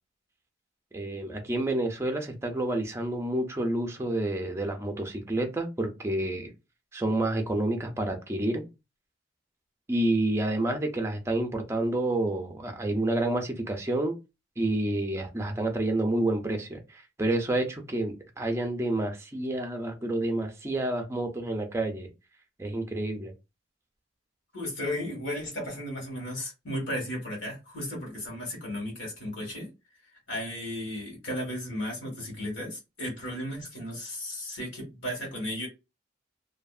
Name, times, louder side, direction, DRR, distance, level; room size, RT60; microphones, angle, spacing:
voice 1, 0.9-6.5 6.9-8.6 9.9-14.1 14.6-22.1 22.6-23.3, right 1 dB, 15° right, 0.5 m, -29 dB
voice 2, 24.5-29.7 30.3-35.7, left 1 dB, 70° left, 1.5 m, -35 dB
2.7 x 2.4 x 2.4 m
head